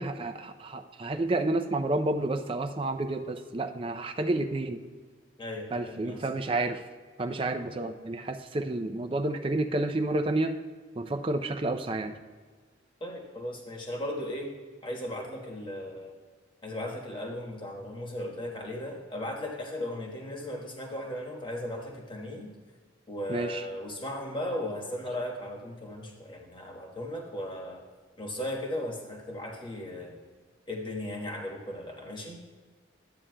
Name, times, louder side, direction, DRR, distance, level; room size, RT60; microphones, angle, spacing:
voice 1, 0.0-4.8 5.7-6.8 7.2-10.5 11.0-12.1 23.3-23.6, right 2 dB, 30° right, 7 dB, 0.4 m, -30 dB
voice 2, 5.4-6.3 13.0-14.5 14.8-16.2 16.6-22.5 23.1-27.8 28.2-30.2 30.7-32.4, left 1 dB, 25° left, -1 dB, 1.2 m, -36 dB
12.5 x 8.6 x 2.2 m, 1.5 s
head